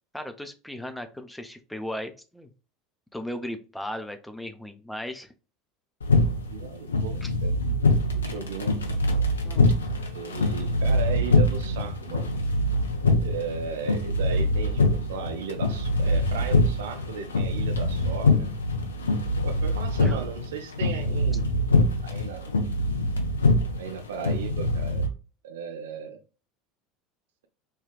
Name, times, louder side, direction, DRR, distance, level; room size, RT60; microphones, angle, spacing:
voice 1, 0.1-2.5 3.1-5.3 7.2-7.3 9.4-9.7 20.0-20.2, left 1 dB, 5° left, 0.5 m, -36 dB
sound 1, 6.0-25.1, left 2 dB, 75° left, 0.5 m, -24 dB
voice 2, 6.5-7.5 8.2-8.8 9.7-9.8 10.1-12.3 13.2-18.5 19.4-21.5 22.0-22.5 23.8-25.1 25.4-26.2, right 6 dB, 65° right, 0.4 m, -36 dB
3.3 x 2.3 x 2.3 m
figure-of-eight pair, 70°, 0 cm